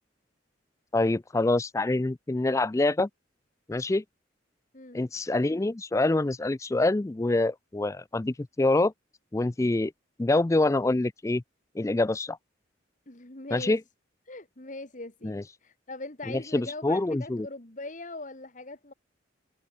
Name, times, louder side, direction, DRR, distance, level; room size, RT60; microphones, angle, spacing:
voice 1, 0.9-3.1 3.7-4.0 4.9-8.9 9.3-9.9 10.2-11.4 11.8-12.4 13.5-13.8 15.2-15.4 16.3-17.5, left 2 dB, 15° left, 0.4 m, -26 dB
voice 2, 13.1-13.8 14.3-15.4 15.6-18.9, left 2 dB, 40° left, 2.2 m, -41 dB
head